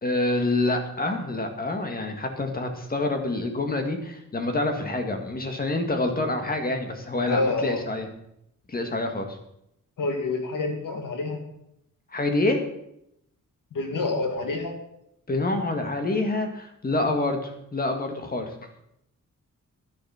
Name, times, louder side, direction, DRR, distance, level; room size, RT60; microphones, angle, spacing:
voice 1, 0.0-8.1 8.7-9.4 12.1-12.6 15.3-18.5, left 2 dB, 25° left, 4 dB, 2.0 m, -27 dB
voice 2, 7.2-7.8 10.0-11.4 13.7-14.8, left 3 dB, 75° left, 4 dB, 2.5 m, -27 dB
11.5 x 11.0 x 5.8 m, 0.78 s
wide cardioid pair, 160°, 32 cm